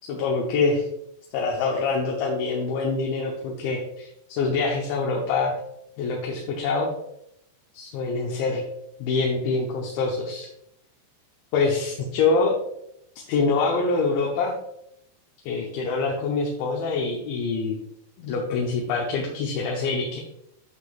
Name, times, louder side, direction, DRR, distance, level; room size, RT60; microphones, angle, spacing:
voice 1, 0.1-0.9 1.3-5.5 6.0-6.9 7.7-8.6 9.0-10.5 11.5-12.6 13.3-14.6 15.4-17.8 18.2-20.2, left 4 dB, 75° left, -1 dB, 3.2 m, -25 dB
12.0 x 5.9 x 2.5 m, 0.78 s
omnidirectional pair, 5.5 m